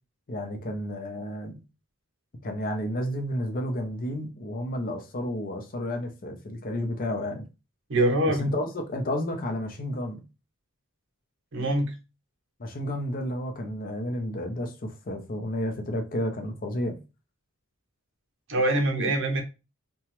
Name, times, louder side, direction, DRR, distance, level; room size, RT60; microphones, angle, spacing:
voice 1, 0.3-1.6 2.4-7.5 8.3-10.2 12.6-17.0, left 1 dB, 40° left, 0.6 m, -31 dB
voice 2, 7.9-8.4 11.5-11.9 18.5-19.4, right 1 dB, 60° right, 0.7 m, -24 dB
2.9 x 2.2 x 3.0 m
head